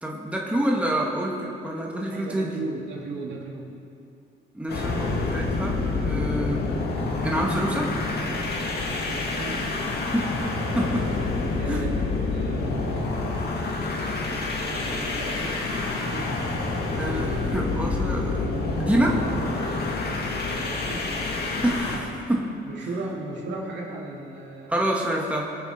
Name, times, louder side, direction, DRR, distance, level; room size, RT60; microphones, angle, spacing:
voice 1, 0.0-2.6 4.5-6.7 7.2-8.0 10.1-10.4 10.7-11.3 11.7-11.8 17.0-18.5 18.8-19.3 21.6-22.5 24.7-25.6, right 1 dB, 5° right, -2 dB, 1.7 m, -27 dB
voice 2, 2.1-3.7 9.0-9.6 11.6-12.8 14.6-15.6 16.1-16.4 20.4-21.1 22.7-24.9, right 3 dB, 65° right, -3 dB, 2.8 m, -36 dB
sound 1, 4.7-22.0, left 3 dB, 55° left, 2.2 m, -28 dB
sound 2, 4.8-10.7 11.0-11.1, left 2 dB, 30° left, 2.1 m, -40 dB
21.0 x 7.1 x 5.2 m, 2.6 s
cardioid pair, 90°, 20 cm